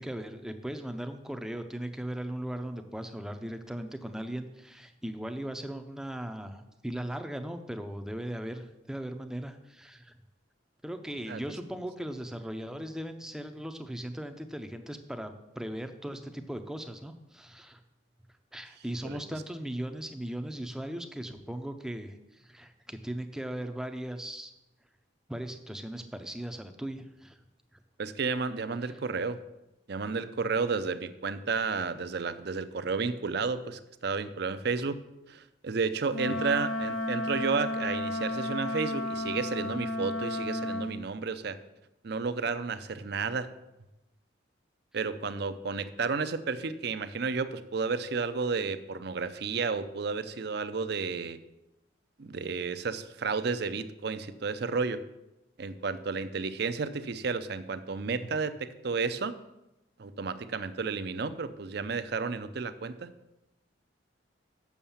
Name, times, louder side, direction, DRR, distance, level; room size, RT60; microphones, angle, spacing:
voice 1, 0.0-10.2 10.8-17.8 18.5-24.5 25.3-27.4 28.8-29.0 36.3-36.4, right 1 dB, 5° right, 7 dB, 0.5 m, -38 dB
voice 2, 28.0-29.4 29.9-35.0 35.3-41.6 42.0-43.5 44.9-51.4 52.2-55.0 55.6-59.3 60.0-63.1, right 4 dB, 55° right, 12 dB, 0.5 m, -32 dB
Wind instrument woodwind instrument, 36.1-40.9, left 2 dB, 75° left, 1.1 m, -32 dB
7.1 x 6.5 x 7.1 m, 0.94 s
head